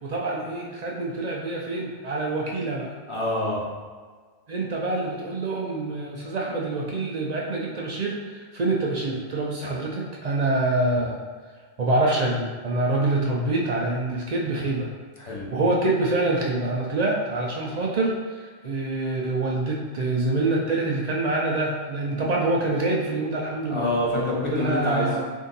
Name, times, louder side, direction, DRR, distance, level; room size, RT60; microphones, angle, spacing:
voice 1, 0.0-2.9 4.5-11.2 11.8-14.9 15.5-23.9 24.5-25.3, right 2 dB, 60° right, -2 dB, 0.4 m, -26 dB
voice 2, 3.1-3.6 15.2-15.5 23.7-25.1, left 1 dB, 30° left, -4 dB, 0.7 m, -26 dB
3.5 x 2.7 x 3.9 m, 1.5 s
omnidirectional pair, 1.2 m